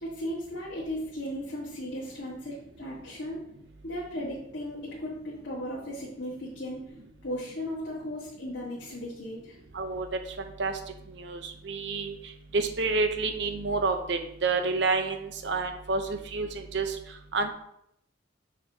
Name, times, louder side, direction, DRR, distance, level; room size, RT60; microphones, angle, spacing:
voice 1, 0.0-3.4 3.8-6.9 7.2-9.6, equal, 70° left, -6 dB, 1.5 m, -36 dB
voice 2, 9.7-10.1 10.6-10.7 11.2-12.2 12.5-17.0 17.3-17.5, right 3 dB, 65° right, 6 dB, 0.7 m, -29 dB
7.1 x 4.9 x 2.8 m, 0.76 s
head